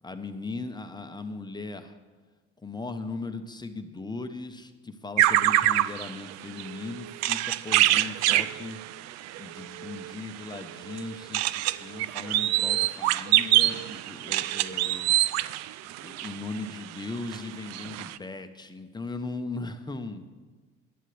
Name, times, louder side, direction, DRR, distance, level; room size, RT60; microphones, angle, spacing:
voice 1, 0.0-2.0 2.6-8.8 9.4-15.2 16.0-20.2, left 3 dB, 15° left, 7 dB, 1.0 m, -38 dB
sound 1, 5.2-16.9 17.3-17.4 17.7-18.2, right 14 dB, 60° right, 0.5 m, -26 dB
17.0 x 11.0 x 3.4 m, 1.4 s
supercardioid pair, 85°, 30 cm